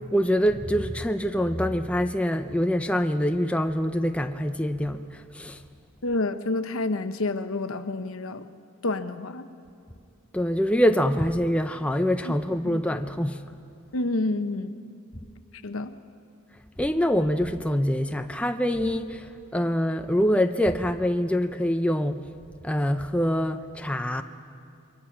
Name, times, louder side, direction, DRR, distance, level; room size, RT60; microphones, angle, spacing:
voice 1, 0.0-5.6 10.3-13.5 16.8-22.3 22.6-24.2, equal, 5° left, 0.5 m, -25 dB
voice 2, 6.0-8.4 8.8-9.5 12.2-12.3 12.6-12.8 13.9-14.7 15.6-15.9, left 2 dB, 70° left, 0.9 m, -28 dB
28.5 x 23.5 x 5.9 m
head